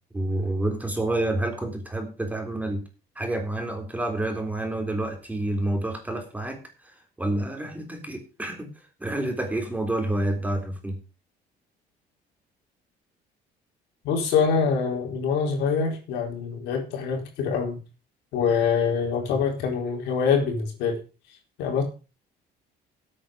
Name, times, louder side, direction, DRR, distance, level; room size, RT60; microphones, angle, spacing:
voice 1, 0.1-2.9 3.2-6.6 7.2-8.7 9.0-11.0, right 1 dB, 10° right, 3.8 m, -28 dB
voice 2, 14.0-17.7 18.3-21.0 21.6-21.8, left 6 dB, 85° left, 4.2 m, -25 dB
12.5 x 8.8 x 5.1 m
cardioid pair, 110°, 17 cm